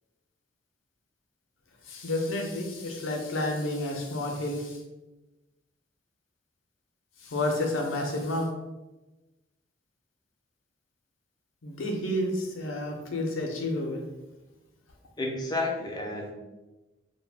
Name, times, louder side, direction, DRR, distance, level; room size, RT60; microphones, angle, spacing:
voice 1, 1.9-4.8 7.2-8.5 11.6-14.0, left 1 dB, 75° left, 2 dB, 0.6 m, -30 dB
voice 2, 15.2-16.3, left 2 dB, 20° left, 0 dB, 0.4 m, -31 dB
2.3 x 2.1 x 3.3 m, 1.1 s
head